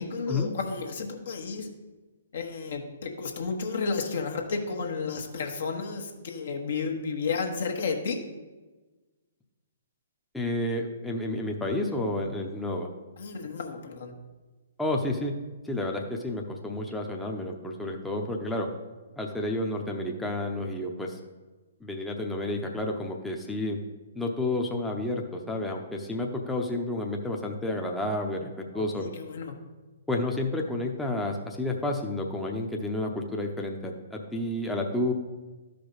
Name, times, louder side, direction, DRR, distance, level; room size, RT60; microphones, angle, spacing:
voice 1, 0.0-1.7 2.3-8.2 13.2-14.1 28.7-29.6, left 4 dB, 65° left, 3 dB, 1.3 m, -32 dB
voice 2, 10.3-12.9 14.8-15.3 15.6-18.7 19.2-21.2 21.8-23.8 24.1-29.1 30.1-35.1, left 1 dB, 5° left, 0 dB, 0.8 m, -30 dB
12.5 x 5.1 x 4.0 m, 1.2 s
figure-of-eight pair, 125°, 0 cm